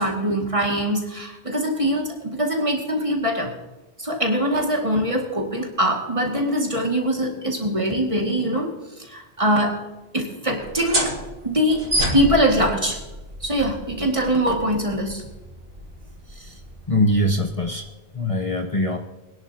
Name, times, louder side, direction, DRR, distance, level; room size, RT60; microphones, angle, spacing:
voice 1, 0.0-3.5 4.0-8.7 9.1-9.8 10.1-11.1 11.4-11.8 12.1-13.0 13.4-15.3, equal, 30° right, 0 dB, 2.2 m, -22 dB
sound 1, 10.6-17.9, right 1 dB, 85° right, 3.8 m, -30 dB
voice 2, 16.3-16.6 16.9-17.9 18.1-19.0, left 1 dB, 35° left, 3 dB, 0.9 m, -22 dB
23.0 x 10.5 x 2.8 m, 1.1 s
omnidirectional pair, 1.0 m